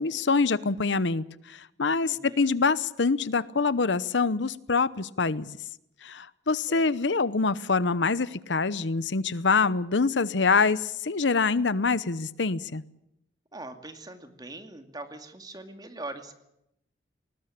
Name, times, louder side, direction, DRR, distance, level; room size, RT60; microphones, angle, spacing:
voice 1, 0.0-5.6 6.0-12.8, left 4 dB, 80° left, 17 dB, 0.9 m, -25 dB
voice 2, 2.0-2.5 6.7-6.9 13.5-16.3, right 2 dB, 20° right, 7 dB, 2.3 m, -42 dB
20.5 x 19.0 x 8.6 m, 0.80 s
head